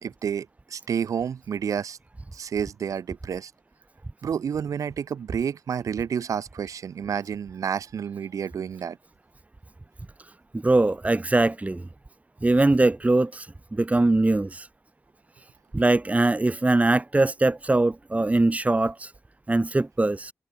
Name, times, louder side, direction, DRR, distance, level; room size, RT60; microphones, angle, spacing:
voice 1, 0.0-2.0 2.3-3.5 4.2-9.0, right 7 dB, 80° right, 3.2 m, -30 dB
voice 2, 10.5-11.9 12.4-13.5 13.7-14.7 15.7-19.1 19.5-20.3, right 2 dB, 25° right, 1.4 m, -22 dB
cardioid pair, 45°, 6 cm